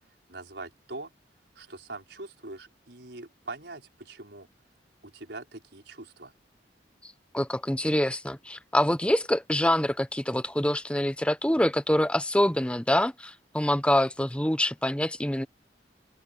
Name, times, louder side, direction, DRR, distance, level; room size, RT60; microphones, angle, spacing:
voice 1, 0.3-1.1 1.5-4.5 5.0-6.3, right 2 dB, 75° right, 4.9 m, -42 dB
voice 2, 7.0-15.5, left 1 dB, 5° left, 0.8 m, -25 dB
open air
head